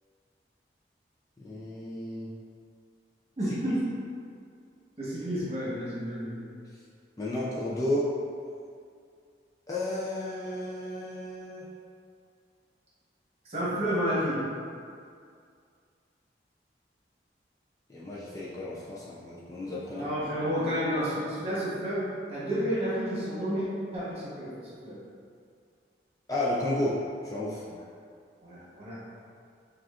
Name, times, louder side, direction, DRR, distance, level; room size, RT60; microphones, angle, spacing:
voice 1, 1.4-2.3 7.2-8.1 9.7-11.7 17.9-20.1 26.3-27.0 27.2-27.6, left 1 dB, 20° left, -8 dB, 0.4 m, -32 dB
voice 2, 3.4-3.8 5.0-6.5 13.4-14.5 19.9-23.7 23.9-25.0 27.7-27.8 28.4-29.0, equal, 35° right, -9 dB, 1.1 m, -31 dB
5.9 x 2.4 x 2.4 m, 2.3 s
head